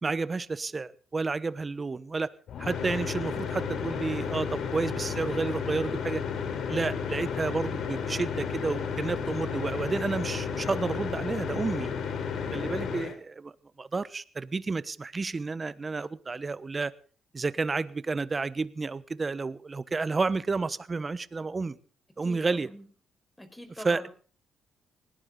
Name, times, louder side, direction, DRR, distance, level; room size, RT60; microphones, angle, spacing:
voice 1, 0.0-2.3 2.6-6.2 6.7-11.9 12.5-13.5 13.8-16.9 17.3-21.8 22.2-22.7 23.8-24.1, right 4 dB, 30° right, 17 dB, 1.1 m, -31 dB
sound 1, 2.5-13.2, left 6 dB, 70° left, 3.6 m, -32 dB
voice 2, 22.2-22.8 23.4-24.1, left 1 dB, 10° left, 7 dB, 5.2 m, -44 dB
20.0 x 18.0 x 3.8 m, 0.41 s
cardioid pair, 90°, 0 cm